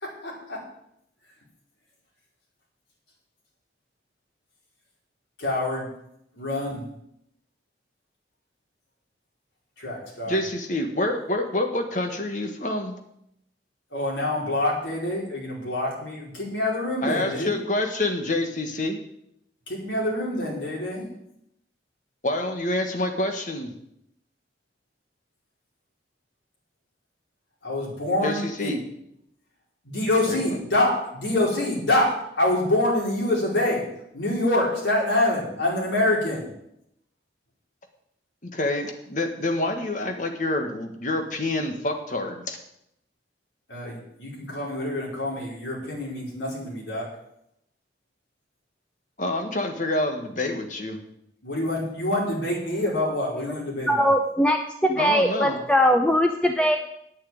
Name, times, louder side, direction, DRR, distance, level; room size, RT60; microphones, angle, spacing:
voice 1, 0.0-0.6 5.4-5.9 6.4-6.8 9.8-10.4 13.9-17.5 19.7-21.1 27.6-28.7 29.8-33.8 34.1-36.5 43.7-47.1 51.4-54.1, left 1 dB, 90° left, -3 dB, 4.9 m, -26 dB
voice 2, 10.3-13.0 17.0-19.0 22.2-23.7 28.2-28.8 30.3-30.4 38.4-42.6 49.2-51.0 55.0-55.6, left 1 dB, 45° left, 5 dB, 1.7 m, -27 dB
voice 3, 53.9-56.8, equal, 5° left, 4 dB, 0.6 m, -21 dB
8.8 x 8.6 x 8.9 m, 0.76 s
head